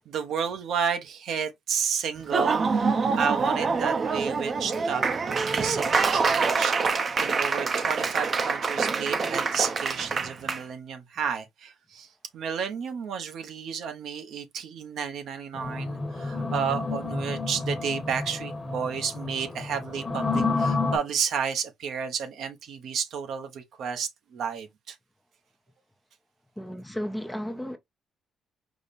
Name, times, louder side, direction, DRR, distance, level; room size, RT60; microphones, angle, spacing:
voice 1, 0.0-5.0 5.5-25.0, right 7 dB, 70° right, 0.8 m, -32 dB
Laughter / Applause, 2.2-10.6, right 4 dB, 35° right, 0.6 m, -26 dB
sound 1, 15.5-21.0, left 3 dB, 20° left, 1.0 m, -30 dB
voice 2, 26.6-27.8, equal, 5° left, 0.5 m, -33 dB
5.0 x 2.0 x 4.0 m
cardioid pair, 115°, 0 cm